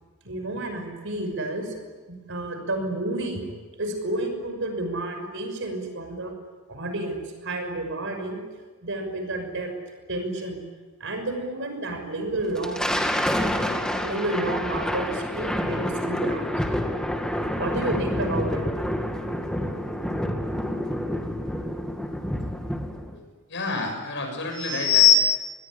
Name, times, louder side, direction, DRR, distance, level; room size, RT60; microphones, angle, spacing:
voice 1, 0.2-1.7 2.1-3.5 3.8-6.3 6.7-8.4 8.8-9.7 10.1-10.6 11.0-12.9 14.0-16.4 17.6-18.6, right 2 dB, 60° right, 5 dB, 6.1 m, -30 dB
Thunder, 12.4-23.2, equal, 5° left, 2.1 m, -28 dB
voice 2, 23.5-25.1, left 9 dB, 55° left, 4 dB, 7.1 m, -22 dB
26.0 x 20.5 x 10.0 m, 1.4 s
head